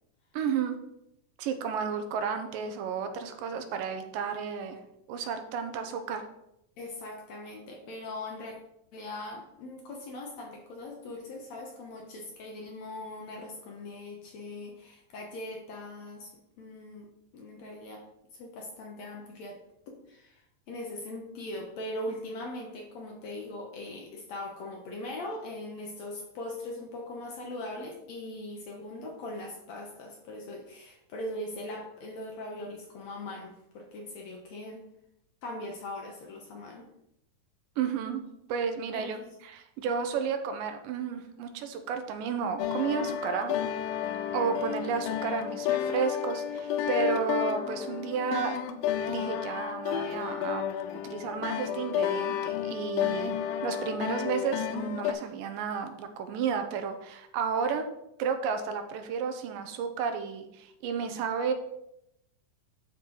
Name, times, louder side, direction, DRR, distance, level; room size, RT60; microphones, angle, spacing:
voice 1, 0.3-0.8 1.4-4.8 5.1-6.3 37.8-38.2 38.5-39.2 39.4-43.6 44.3-48.5 49.1-50.6 51.0-53.4 53.6-57.9 58.2-61.5, right 6 dB, 80° right, 7 dB, 2.4 m, -32 dB
voice 2, 6.8-8.6 8.9-16.3 16.6-17.1 17.3-18.0 18.3-34.8 35.4-36.9 38.9-39.4 43.6-43.7, left 1 dB, 65° left, 1 dB, 1.8 m, -40 dB
sound 1, 42.6-55.1, left 10 dB, 85° left, 2.3 m, -31 dB
12.0 x 4.4 x 3.9 m, 0.82 s
omnidirectional pair, 4.0 m